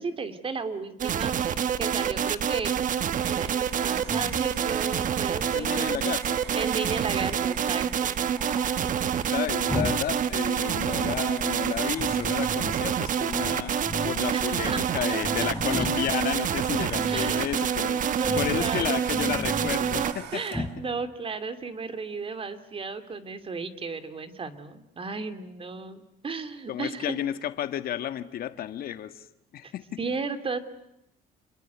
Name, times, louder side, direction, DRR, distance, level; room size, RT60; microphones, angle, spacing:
voice 1, 0.0-2.7 3.2-6.0 6.5-8.2 14.3-14.9 15.4-15.5 17.0-17.5 18.0-19.1 20.3-27.2 30.0-30.6, right 4 dB, 35° right, 10 dB, 2.8 m, -34 dB
sound 1, 1.0-20.1, right 8 dB, 50° right, 1.3 m, -27 dB
Domestic sounds home sounds, 3.1-20.8, right 11 dB, 85° right, 2.2 m, -44 dB
Growling, 4.0-6.0 8.4-10.1 10.4-11.3 11.9-12.8 13.3-14.3 14.6-14.7 14.9-16.2 16.7-17.5 18.2-18.6 19.0-20.2 20.5-20.8, left 1 dB, ahead, 3.9 m, -37 dB
voice 2, 5.5-6.4 9.3-13.7 14.0-18.0 18.3-20.6 26.7-29.3 29.5-29.8, left 10 dB, 60° left, 11 dB, 1.5 m, -32 dB
28.5 x 22.0 x 9.4 m, 0.82 s
cardioid pair, 110°, 17 cm